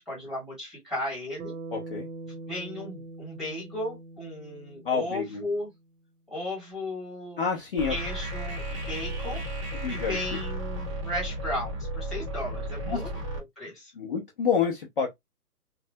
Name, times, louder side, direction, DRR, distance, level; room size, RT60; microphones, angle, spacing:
voice 1, 0.0-1.5 2.5-5.7 6.3-7.5 7.9-9.4 9.9-13.1 13.6-13.9, left 1 dB, ahead, 1.3 m, -35 dB
Bass guitar, 1.4-5.8, right 3 dB, 70° right, 1.0 m, -43 dB
voice 2, 1.7-2.1 4.8-5.4 7.4-7.9 9.8-10.2 12.8-13.0 14.0-15.1, left 6 dB, 35° left, 0.6 m, -28 dB
sound 1, 7.8-13.4, right 1 dB, 20° right, 0.6 m, -34 dB
3.2 x 2.2 x 2.6 m
hypercardioid pair, 150°, 47 cm